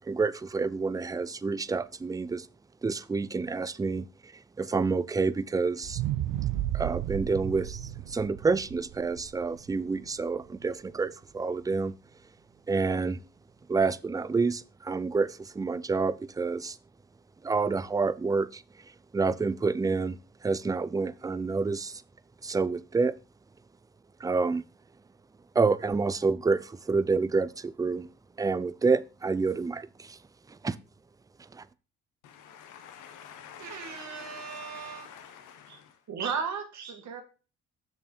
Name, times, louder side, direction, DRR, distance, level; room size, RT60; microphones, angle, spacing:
voice 1, 0.1-2.5 2.8-4.1 4.6-6.0 6.7-11.9 12.7-13.2 13.7-16.8 17.4-18.6 19.1-20.2 20.4-22.0 22.4-23.1 24.2-24.6 25.6-28.1 28.4-30.2 30.5-30.8 31.5-31.6, right 4 dB, 10° right, 0.4 m, -28 dB
sound 1, 5.8-10.1 10.6-10.7, right 14 dB, 90° right, 0.7 m, -33 dB
voice 2, 32.2-35.9, left 8 dB, 90° left, 1.3 m, -48 dB
voice 3, 33.6-35.2 35.7-35.8 36.1-37.2, right 6 dB, 70° right, 1.6 m, -36 dB
6.6 x 5.7 x 4.4 m
cardioid pair, 90°, 30 cm